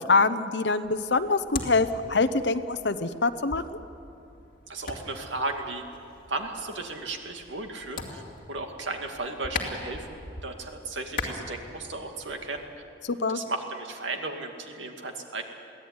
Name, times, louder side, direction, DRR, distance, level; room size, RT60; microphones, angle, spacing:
voice 1, 0.0-3.6 13.0-13.4, left 3 dB, 65° left, 9 dB, 0.8 m, -24 dB
sound 1, 0.8-12.7, left 3 dB, 50° left, 2.7 m, -41 dB
voice 2, 4.7-5.8 6.3-8.2 8.5-12.7 13.3-15.4, right 3 dB, 85° right, 4 dB, 2.3 m, -35 dB
23.0 x 16.5 x 9.6 m, 2.7 s
head